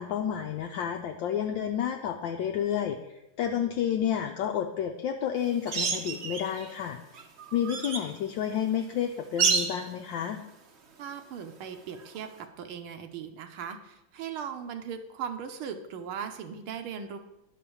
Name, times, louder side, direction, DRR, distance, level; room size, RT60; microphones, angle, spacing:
voice 1, 0.0-3.0 3.4-7.0 7.5-10.4, left 9 dB, 70° left, 3 dB, 1.3 m, -30 dB
sound 1, 5.7-6.7 7.1-8.1 9.4-9.9 12.1-12.2, right 5 dB, 50° right, 0.8 m, -29 dB
voice 2, 11.0-17.2, right 7 dB, 80° right, 7 dB, 1.8 m, -38 dB
11.0 x 5.0 x 7.1 m, 0.91 s
omnidirectional pair, 2.3 m